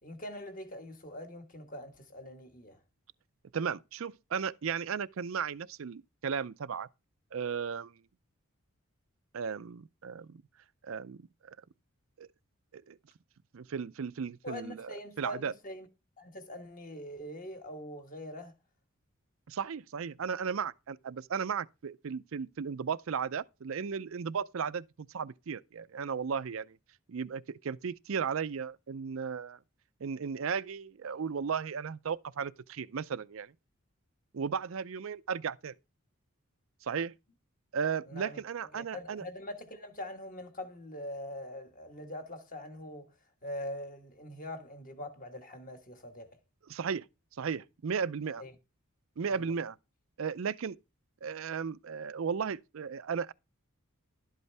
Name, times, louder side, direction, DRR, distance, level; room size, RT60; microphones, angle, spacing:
voice 1, 0.0-2.8 14.4-15.9 16.2-18.5 38.1-38.4 38.7-43.1 43.4-46.4 48.4-48.5 49.3-49.5, left 1 dB, 40° left, 1.4 m, -43 dB
voice 2, 3.5-6.9 7.3-8.0 9.3-10.4 10.8-11.5 12.2-12.3 12.7-13.0 13.5-15.5 19.5-26.8 27.1-29.6 30.0-33.5 34.3-35.7 36.8-37.2 37.7-39.2 46.7-47.1 47.4-48.4 49.2-49.8 50.2-50.8 51.2-53.3, right 6 dB, 70° right, 0.5 m, -35 dB
11.5 x 8.1 x 3.4 m
head